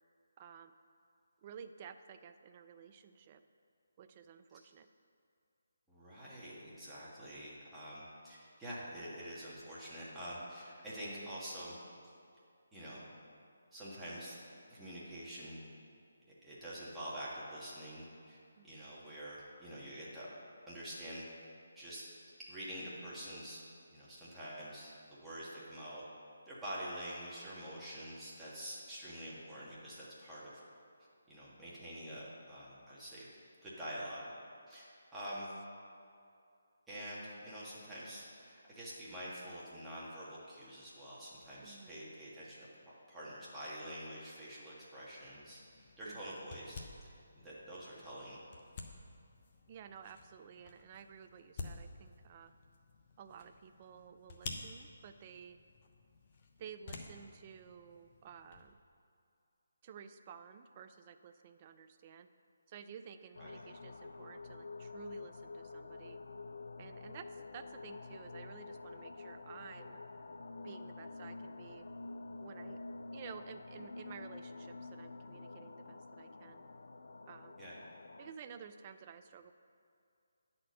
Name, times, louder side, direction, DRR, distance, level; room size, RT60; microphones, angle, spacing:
voice 1, 0.4-0.7 1.4-3.4 4.0-4.9 18.6-18.7 35.2-35.4 41.6-42.0 46.1-46.4 49.7-52.5 53.2-55.6 56.6-58.8 59.8-62.3 62.7-66.2 66.8-70.0 70.6-71.9 72.4-72.8 73.1-76.6 77.3-77.6 78.2-79.5, right 7 dB, 30° right, 9 dB, 0.4 m, -53 dB
voice 2, 5.9-11.8 12.0-12.1 12.7-13.0 13.7-14.4 14.7-15.7 16.4-18.4 18.6-20.3 20.7-21.3 21.8-22.0 22.5-23.6 23.9-26.0 26.5-30.5 31.3-33.3 33.6-34.3 34.7-35.5 36.9-48.4 63.4-63.5 77.6-77.8, equal, 5° right, -10 dB, 1.7 m, -46 dB
sound 1, 45.2-58.7, left 3 dB, 40° left, 0.8 m, -52 dB
sound 2, 63.3-78.3, left 3 dB, 75° left, 0.4 m, -48 dB
9.9 x 4.3 x 6.5 m, 2.5 s
figure-of-eight pair, 155°, 0 cm